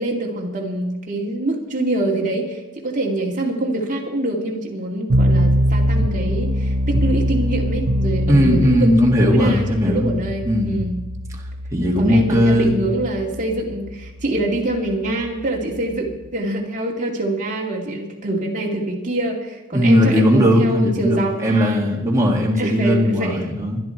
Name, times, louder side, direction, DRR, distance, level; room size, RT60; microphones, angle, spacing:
voice 1, 0.0-8.9 9.2-11.0 12.0-21.8 22.6-23.5, right 1 dB, 35° right, -2 dB, 2.6 m, -25 dB
sound 1, 5.1-16.3, equal, 60° right, 1.1 m, -23 dB
voice 2, 8.3-10.2 10.4-10.8 11.7-12.7 19.7-23.8, equal, 15° right, -2 dB, 2.4 m, -17 dB
22.5 x 10.5 x 4.6 m, 1.0 s
head